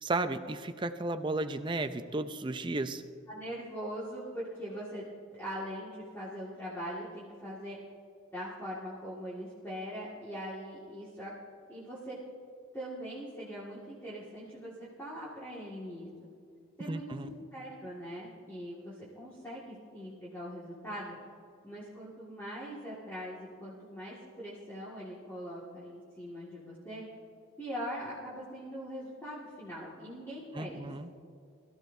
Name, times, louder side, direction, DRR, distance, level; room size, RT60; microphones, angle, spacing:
voice 1, 0.0-3.0 16.8-17.3 30.5-31.1, right 2 dB, 20° right, 9 dB, 0.5 m, -34 dB
voice 2, 3.3-5.0 5.3-7.8 8.3-11.3 11.7-12.2 12.7-16.1 16.8-21.2 21.6-27.0 27.6-30.9, equal, 10° left, -9 dB, 1.9 m, -41 dB
22.0 x 14.0 x 2.7 m, 2.4 s
head